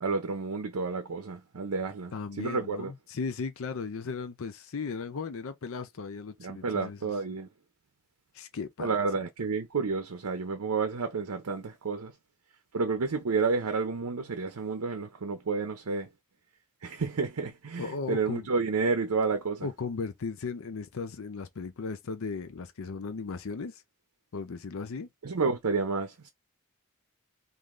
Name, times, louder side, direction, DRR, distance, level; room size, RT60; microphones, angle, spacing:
voice 1, 0.0-2.9 6.4-7.5 8.8-12.1 12.7-16.1 16.8-19.7 25.2-26.3, right 4 dB, 85° right, 0.6 m, -30 dB
voice 2, 2.1-7.1 8.3-8.9 17.8-18.5 19.6-23.8 24.3-25.1, left 4 dB, 65° left, 0.5 m, -36 dB
3.6 x 2.6 x 3.1 m
head